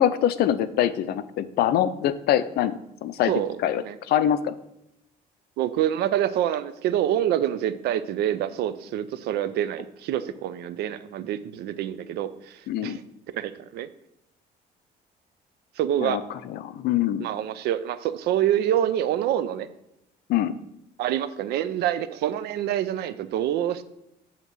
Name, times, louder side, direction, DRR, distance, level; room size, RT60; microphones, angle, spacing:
voice 1, 0.0-3.3 3.6-4.6 12.7-13.0 16.0-16.2 16.5-17.3 20.3-20.5, left 11 dB, 70° left, 13 dB, 0.5 m, -24 dB
voice 2, 3.3-4.0 5.6-13.0 13.3-13.9 15.8-16.2 17.2-19.7 21.0-23.8, right 11 dB, 75° right, 14 dB, 0.5 m, -26 dB
8.0 x 2.9 x 6.1 m, 0.84 s
cardioid pair, 110°, 17 cm